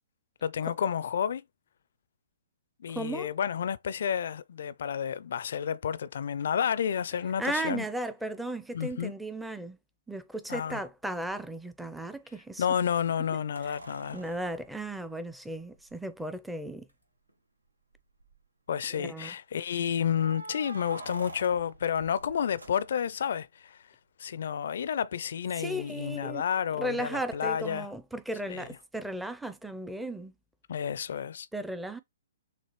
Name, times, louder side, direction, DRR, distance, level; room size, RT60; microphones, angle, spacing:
voice 1, 0.4-1.4 2.8-7.8 8.7-9.1 10.5-10.8 12.6-14.2 18.7-23.8 24.2-27.9 28.5-28.7 30.7-31.5, left 8 dB, 60° left, 0.4 m, -30 dB
voice 2, 2.9-3.3 7.4-9.8 10.1-12.7 13.3-13.4 14.1-16.9 18.9-19.3 25.6-26.4 26.7-30.3 31.5-32.0, right 1 dB, 5° right, 0.5 m, -35 dB
sound 1, 11.2-11.3 13.5-15.9 16.9-17.0 17.3-17.4 17.9-18.4 20.1-23.3 25.8-25.9, right 2 dB, 85° right, 0.9 m, -47 dB
6.6 x 2.4 x 3.1 m
figure-of-eight pair, 120°, 0 cm